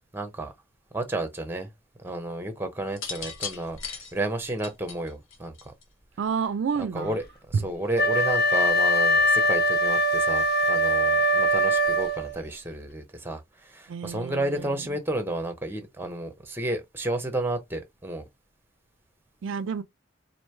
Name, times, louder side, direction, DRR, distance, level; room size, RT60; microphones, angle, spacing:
voice 1, 0.1-0.5 0.9-1.7 2.0-5.7 6.9-7.2 7.5-18.2, right 1 dB, 10° right, 0.7 m, -32 dB
sound 1, 2.9-6.0 7.1-7.5, left 6 dB, 75° left, 1.1 m, -37 dB
voice 2, 6.2-7.2 7.5-7.6 13.9-14.9 19.4-19.8, right 6 dB, 65° right, 0.4 m, -29 dB
Wind instrument woodwind instrument, 7.9-12.4, equal, 50° left, 0.7 m, -22 dB
3.1 x 2.6 x 4.4 m
head